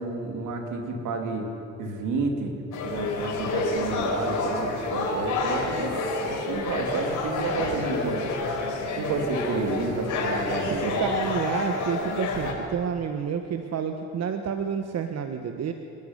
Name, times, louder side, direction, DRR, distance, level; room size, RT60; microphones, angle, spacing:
voice 1, 0.0-1.5 1.8-2.5 2.8-5.9 6.2-8.4 9.0-11.0, right 3 dB, 85° right, 3 dB, 3.2 m, -30 dB
sound 1, 2.7-12.5, left 3 dB, 80° left, 4.8 m, -29 dB
voice 2, 10.6-15.7, right 7 dB, 60° right, 6 dB, 1.3 m, -29 dB
26.0 x 12.0 x 9.9 m, 2.6 s
cardioid pair, 90°, 30 cm